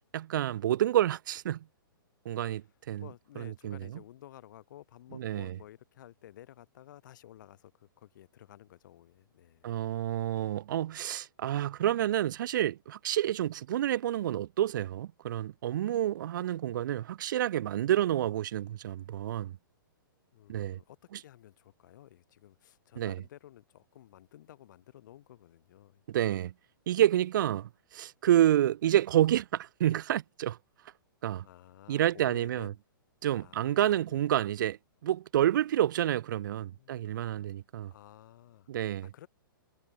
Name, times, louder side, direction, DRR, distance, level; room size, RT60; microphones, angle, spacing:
voice 1, 0.1-1.6 2.3-3.1 3.4-3.8 5.2-5.5 9.6-19.6 20.5-20.8 21.1-21.2 23.0-23.2 26.1-26.5 26.9-30.6 31.2-31.5 31.9-32.7 33.2-37.9 38.7-39.1, right 12 dB, 60° right, 0.4 m, -29 dB
voice 2, 3.0-9.7 20.3-26.3 31.4-32.8 33.4-34.2 36.7-37.5 37.9-38.7 39.1-39.3, left 13 dB, 55° left, 6.5 m, -53 dB
hypercardioid pair, 125°, 12 cm